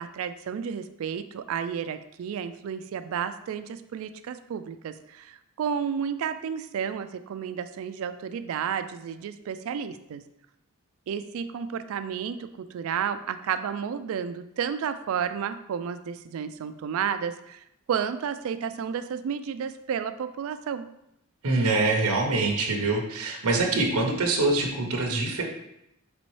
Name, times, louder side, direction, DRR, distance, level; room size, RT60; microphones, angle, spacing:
voice 1, 0.0-10.2 11.1-20.9, right 7 dB, 70° right, 11 dB, 0.3 m, -32 dB
voice 2, 21.4-25.4, right 3 dB, 90° right, 2 dB, 0.7 m, -24 dB
4.1 x 3.4 x 3.1 m, 0.83 s
head